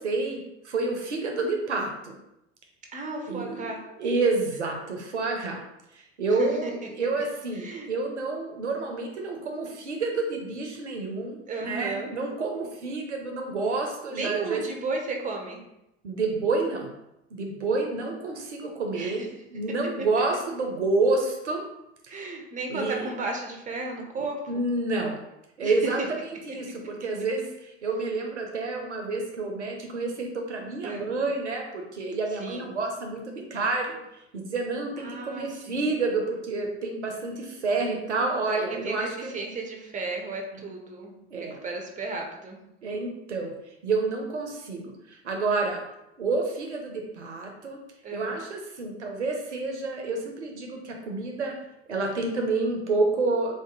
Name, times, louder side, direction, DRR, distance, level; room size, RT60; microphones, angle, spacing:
voice 1, 0.0-2.2 3.3-5.6 5.9-6.7 7.0-14.6 16.0-16.9 17.3-21.6 22.1-22.2 22.7-23.1 24.5-25.2 25.6-34.0 34.3-39.3 41.3-41.6 42.8-43.5 43.8-44.8 45.1-45.8 46.2-47.8 48.1-51.6 51.9-53.5, right 3 dB, 85° right, 1 dB, 0.7 m, -29 dB
voice 2, 2.9-3.8 6.3-6.7 7.5-7.9 11.5-12.1 14.1-15.6 18.9-19.3 22.1-24.6 25.6-26.1 30.8-31.1 32.4-32.7 35.0-35.8 38.5-42.6 48.0-48.4, right 3 dB, 20° right, 2 dB, 0.9 m, -34 dB
3.6 x 2.6 x 3.9 m, 0.85 s
figure-of-eight pair, 65°, 34 cm